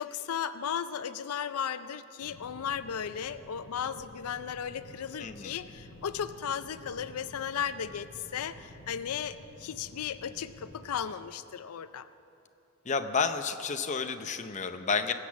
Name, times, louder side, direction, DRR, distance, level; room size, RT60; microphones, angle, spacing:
voice 1, 0.0-12.1, left 8 dB, 85° left, 13 dB, 0.5 m, -35 dB
sound 1, 2.2-11.0, left 1 dB, 50° left, 1.1 m, -51 dB
voice 2, 5.2-5.5 12.9-15.1, left 5 dB, 35° left, 7 dB, 0.6 m, -30 dB
20.0 x 8.2 x 7.3 m, 2.8 s
head